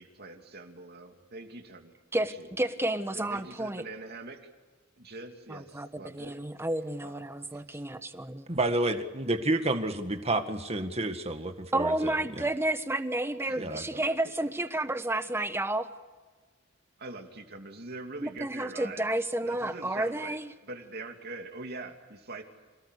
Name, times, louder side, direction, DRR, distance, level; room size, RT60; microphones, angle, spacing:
voice 1, 0.0-1.9 2.2-2.5 3.1-4.4 5.0-6.4 7.0-7.2 7.5-7.8 13.5-13.6 17.0-19.1 19.4-20.4 20.6-22.4, right 2 dB, 50° right, 4 dB, 2.8 m, -43 dB
voice 2, 2.1-3.8 5.5-8.5 11.7-15.9 18.2-20.5, right 1 dB, 10° right, 10 dB, 1.2 m, -31 dB
voice 3, 8.5-12.5 13.6-14.0, right 2 dB, 30° right, 7 dB, 1.9 m, -30 dB
28.0 x 18.5 x 8.3 m, 1.4 s
head